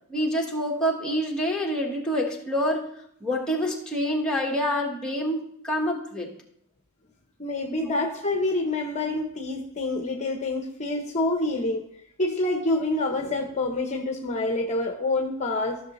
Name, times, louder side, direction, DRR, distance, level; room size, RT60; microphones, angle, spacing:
voice 1, 0.1-2.9 3.2-6.3, equal, 5° left, -1 dB, 1.3 m, -27 dB
voice 2, 7.4-11.9 12.2-15.8, left 2 dB, 30° left, 3 dB, 0.8 m, -27 dB
13.5 x 6.4 x 3.1 m, 0.72 s
head